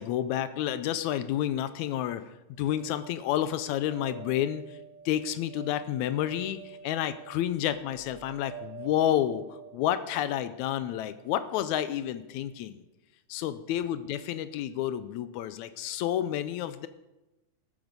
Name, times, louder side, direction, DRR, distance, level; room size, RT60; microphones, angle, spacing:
voice 1, 0.0-2.3 2.6-4.8 5.1-12.8 13.3-16.9, left 11 dB, 80° left, 13 dB, 1.8 m, -30 dB
sound 1, 2.7-11.8, right 7 dB, 90° right, 2.7 m, -49 dB
14.0 x 8.8 x 5.2 m, 1.0 s
omnidirectional pair, 3.6 m